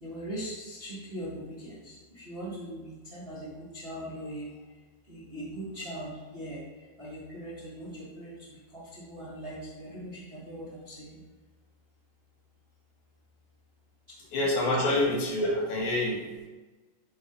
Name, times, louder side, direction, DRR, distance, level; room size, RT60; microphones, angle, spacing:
voice 1, 0.0-4.5 5.1-6.6 7.0-11.1 15.4-15.5, equal, 35° right, -9 dB, 0.9 m, -40 dB
voice 2, 14.3-15.4 15.7-16.5, left 2 dB, 75° left, -2 dB, 2.6 m, -27 dB
8.4 x 3.5 x 3.8 m, 1.2 s
omnidirectional pair, 3.5 m